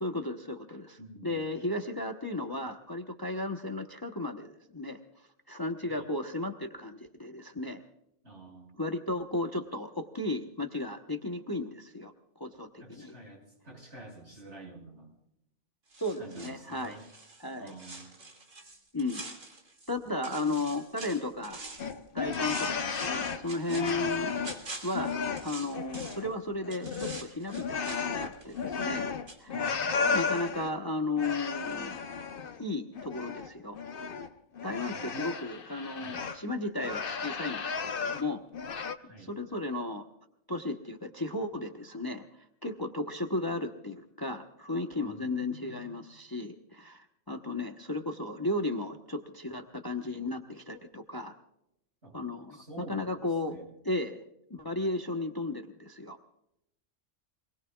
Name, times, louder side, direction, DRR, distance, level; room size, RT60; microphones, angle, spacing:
voice 1, 0.0-5.0 5.5-7.8 8.8-13.1 16.0-17.0 17.4-17.7 18.9-19.2 19.9-21.6 22.1-24.3 24.8-29.1 29.4-29.6 30.0-32.0 32.6-33.8 34.6-38.4 39.2-40.0 40.5-42.2 42.6-51.3 52.1-53.6 53.8-54.2 54.5-56.2, left 2 dB, 20° left, 4 dB, 1.0 m, -34 dB
voice 2, 1.0-1.6 5.9-6.1 8.2-8.8 12.8-15.1 16.2-17.0 17.6-18.2 20.3-20.5 29.5-30.1 34.9-35.3 36.0-36.3 39.0-39.3 45.0-46.0 52.0-52.1 52.5-53.7, right 2 dB, 65° right, -1 dB, 6.9 m, -48 dB
sound 1, 15.9-20.0 20.2-22.0 22.3-26.3 26.7-29.0 29.3-29.4, right 2 dB, 85° right, 2.9 m, -46 dB
sound 2, 21.8-24.7 24.9-26.3 26.6-30.7 31.2-32.6 32.9-36.4 36.8-38.3 38.5-38.9, left 5 dB, 50° left, 1.0 m, -34 dB
27.0 x 20.0 x 2.4 m, 0.82 s
omnidirectional pair, 1.3 m